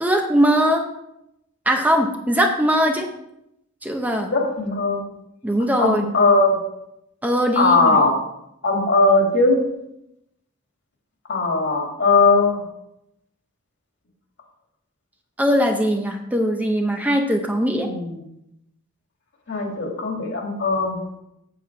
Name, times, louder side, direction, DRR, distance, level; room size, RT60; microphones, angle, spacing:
voice 1, 0.0-0.8 1.7-3.1 3.8-4.3 5.4-6.0 7.2-8.0 15.4-17.9, equal, 10° right, 3 dB, 0.7 m, -20 dB
voice 2, 4.3-5.1 5.8-6.6 7.6-8.2 8.6-9.6 11.3-12.6 17.8-18.2 19.5-21.1, left 3 dB, 60° left, 1 dB, 2.3 m, -19 dB
7.9 x 7.9 x 4.7 m, 0.83 s
head